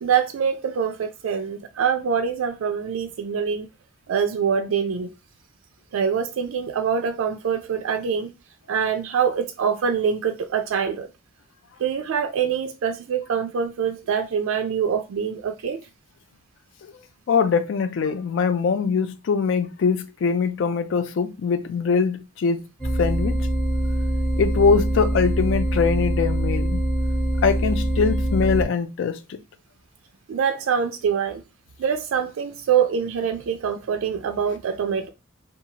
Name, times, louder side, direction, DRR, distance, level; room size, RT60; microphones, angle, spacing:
voice 1, 0.0-3.7 4.1-5.1 5.9-8.3 8.7-11.1 11.8-15.8 30.3-31.4 31.8-35.1, right 7 dB, 75° right, 0.3 m, -24 dB
voice 2, 17.3-22.6 23.0-23.5 24.4-26.8 27.4-29.4, left 5 dB, 60° left, 0.3 m, -22 dB
sound 1, 22.8-28.6, right 1 dB, 5° left, 0.7 m, -23 dB
2.7 x 2.3 x 2.8 m
head